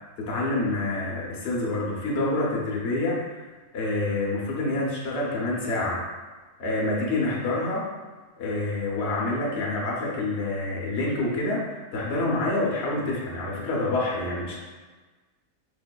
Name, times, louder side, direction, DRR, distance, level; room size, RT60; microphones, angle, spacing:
voice 1, 0.2-3.2 3.7-6.0 6.6-7.8 8.4-14.6, left 2 dB, 55° left, -4 dB, 0.8 m, -27 dB
5.1 x 2.5 x 2.2 m, 1.3 s
omnidirectional pair, 1.7 m